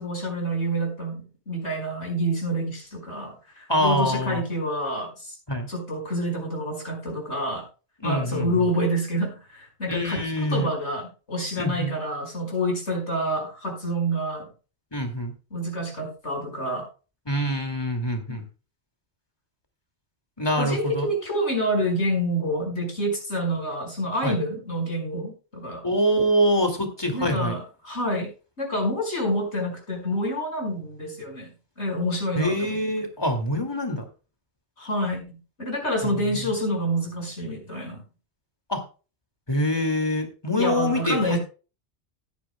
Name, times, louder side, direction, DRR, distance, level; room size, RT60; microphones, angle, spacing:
voice 1, 0.0-5.3 5.7-7.6 8.0-14.5 15.5-16.8 18.3-18.4 20.6-25.8 27.1-28.3 28.6-31.5 31.8-32.8 34.8-38.0 40.6-41.4, equal, 85° left, 1 dB, 5.6 m, -28 dB
voice 2, 3.7-4.4 5.5-5.7 8.0-8.7 9.9-10.7 11.6-11.9 14.9-15.3 17.3-18.4 20.4-21.1 24.2-24.4 25.8-27.6 32.4-34.1 36.0-36.5 38.7-38.8 39.5-41.4, equal, 20° left, 5 dB, 2.3 m, -25 dB
17.0 x 9.9 x 2.2 m, 0.34 s
omnidirectional pair, 1.1 m